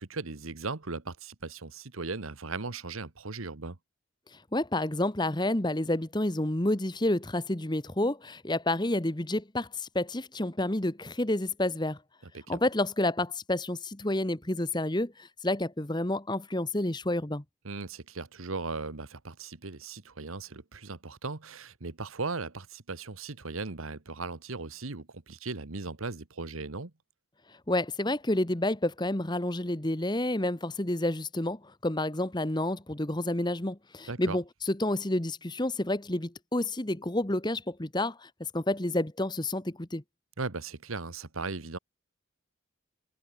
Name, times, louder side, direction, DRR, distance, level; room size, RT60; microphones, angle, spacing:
voice 1, 0.0-3.8 12.3-12.6 17.6-26.9 34.1-34.4 40.4-41.8, right 3 dB, 85° right, 1.4 m, -37 dB
voice 2, 4.5-12.0 12.5-17.4 27.7-40.0, left 1 dB, 20° left, 1.2 m, -29 dB
head